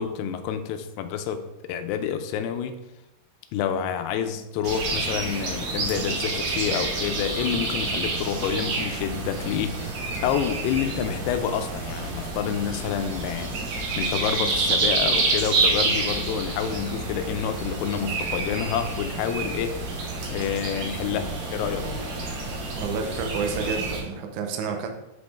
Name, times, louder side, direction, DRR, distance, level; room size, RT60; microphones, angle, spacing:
voice 1, 0.0-2.8 3.5-19.8 20.3-21.9, left 8 dB, 90° left, 8 dB, 2.7 m, -28 dB
sound 1, 4.6-24.0, right 3 dB, 60° right, 2.6 m, -28 dB
voice 2, 22.8-24.9, right 5 dB, 85° right, 4 dB, 1.7 m, -29 dB
8.5 x 5.1 x 3.5 m, 0.94 s
omnidirectional pair, 4.7 m